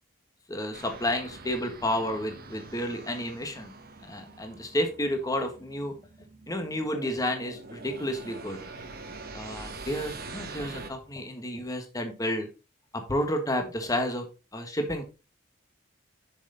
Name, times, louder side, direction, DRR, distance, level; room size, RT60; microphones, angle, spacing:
voice 1, 0.5-3.7 4.0-5.9 6.5-8.6 9.3-12.5 12.9-14.3 14.5-15.1, left 1 dB, 15° left, 5 dB, 1.4 m, -31 dB
sound 1, 0.7-10.9, right 3 dB, 50° right, 1.2 m, -44 dB
7.2 x 6.4 x 3.9 m, 0.31 s
head